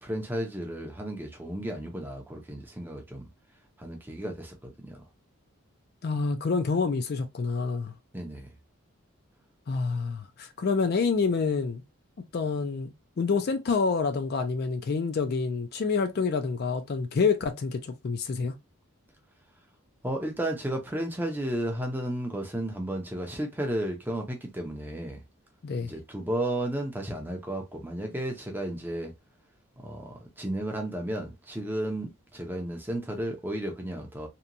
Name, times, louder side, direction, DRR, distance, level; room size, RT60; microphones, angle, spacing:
voice 1, 0.0-3.3 3.8-5.0 8.1-8.5 20.0-25.2 25.8-29.1 29.8-34.3, right 1 dB, 10° right, 0.5 m, -33 dB
voice 2, 6.0-7.9 9.7-11.8 12.3-12.9 13.2-18.5 25.6-25.9, left 4 dB, 45° left, 0.4 m, -27 dB
2.8 x 2.2 x 2.5 m
head